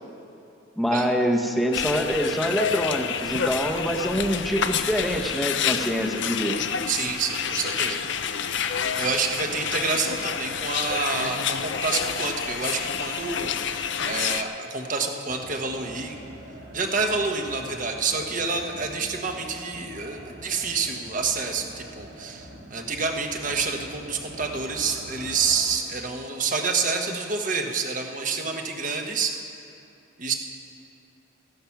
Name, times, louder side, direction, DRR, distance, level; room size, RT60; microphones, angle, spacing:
voice 1, 0.8-6.6, equal, ahead, 1 dB, 0.9 m, -25 dB
sound 1, 1.7-14.4, left 7 dB, 55° left, 0.5 m, -28 dB
voice 2, 6.9-8.0 8.9-16.1 16.7-29.3 30.2-30.3, right 4 dB, 40° right, 3 dB, 1.1 m, -28 dB
sound 2, 15.3-25.6, right 1 dB, 55° right, 3.6 m, -44 dB
15.0 x 11.5 x 5.9 m, 2.7 s
head